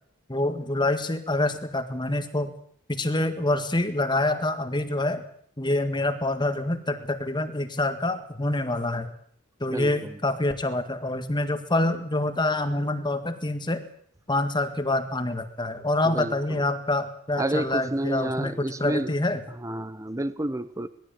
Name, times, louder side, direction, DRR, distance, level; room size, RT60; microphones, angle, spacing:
voice 1, 0.3-2.5 2.9-5.2 5.6-9.1 9.6-13.8 14.3-19.4, left 2 dB, 20° left, 8 dB, 1.8 m, -26 dB
voice 2, 9.7-10.2 16.0-16.6 17.4-19.1 19.6-20.9, right 1 dB, 15° right, 14 dB, 0.8 m, -30 dB
20.5 x 15.5 x 9.0 m, 0.63 s
head